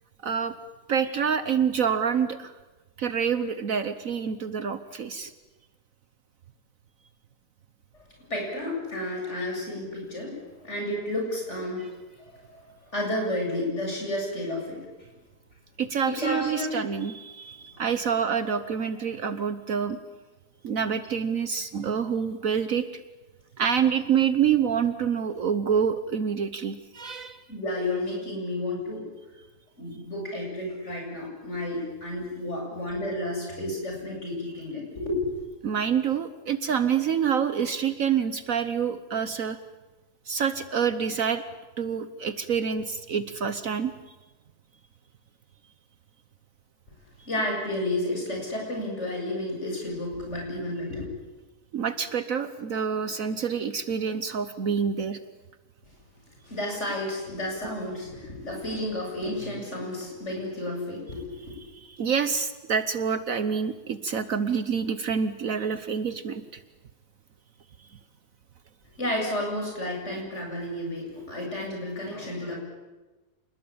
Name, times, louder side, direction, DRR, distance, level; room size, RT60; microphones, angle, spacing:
voice 1, 0.2-0.5 0.9-2.5 3.0-5.3 15.8-20.0 20.6-23.0 23.6-27.4 35.6-39.6 40.3-41.4 41.8-43.9 51.7-55.2 62.0-66.6, right 7 dB, 60° right, 11 dB, 1.3 m, -27 dB
voice 2, 8.3-11.9 12.2-14.9 16.1-16.7 18.0-18.1 27.5-29.1 29.8-35.3 47.3-51.1 56.4-61.4 69.0-72.6, left 1 dB, 45° left, 0 dB, 8.1 m, -31 dB
27.5 x 20.0 x 8.7 m, 1.2 s
omnidirectional pair, 1.7 m